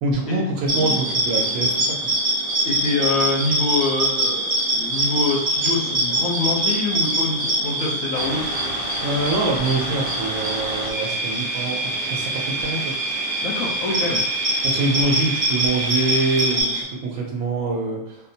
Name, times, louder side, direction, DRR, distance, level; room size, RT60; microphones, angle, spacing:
voice 1, 0.0-2.1 9.0-12.9 14.6-18.2, right 3 dB, 80° right, -1 dB, 1.1 m, -25 dB
sound 1, 0.7-16.8, right 1 dB, 45° right, 1.3 m, -24 dB
voice 2, 2.6-8.8 13.4-14.2, left 3 dB, 75° left, -1 dB, 1.2 m, -25 dB
sound 2, 8.1-16.6, right 2 dB, 40° left, 0.5 m, -31 dB
4.3 x 2.0 x 2.7 m, 0.91 s
omnidirectional pair, 1.5 m